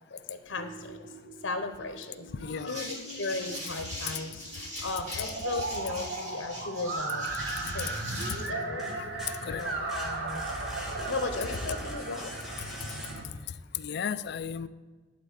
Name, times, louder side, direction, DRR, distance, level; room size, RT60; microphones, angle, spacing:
voice 1, 0.1-1.0 1.4-2.3 2.7-8.0 8.5-8.9 9.5-10.5 11.1-12.3, left 3 dB, 75° left, 7 dB, 0.8 m, -36 dB
sound 1, 0.6-13.3, right 3 dB, 80° right, 1.3 m, -37 dB
voice 2, 2.3-3.2 4.1-4.2 5.5-5.6 6.4-6.5 8.3-8.4 8.8-9.6 13.7-14.7, left 7 dB, 60° left, 14 dB, 0.4 m, -36 dB
sound 2, 2.6-8.5, equal, 40° right, 2.9 m, -41 dB
sound 3, 7.3-8.1 8.5-13.6, left 1 dB, ahead, 1.5 m, -42 dB
11.5 x 4.1 x 8.0 m, 1.4 s
head